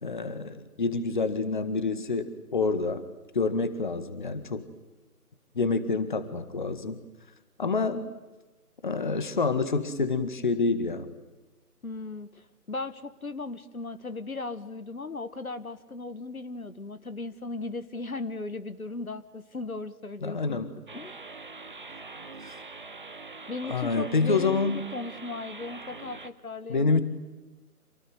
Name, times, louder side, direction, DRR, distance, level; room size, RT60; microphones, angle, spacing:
voice 1, 0.0-3.0 3.3-4.7 5.6-7.0 7.6-8.1 8.8-11.1 20.2-20.7 23.6-24.8 26.7-27.0, left 4 dB, 30° left, 12 dB, 1.8 m, -27 dB
voice 2, 11.8-20.6 20.9-21.2 23.5-27.0, left 3 dB, 65° left, 13 dB, 1.6 m, -37 dB
sound 1, 20.9-26.3, right 3 dB, 30° right, 1.1 m, -43 dB
27.5 x 19.5 x 9.5 m, 1.1 s
figure-of-eight pair, 155°, 46 cm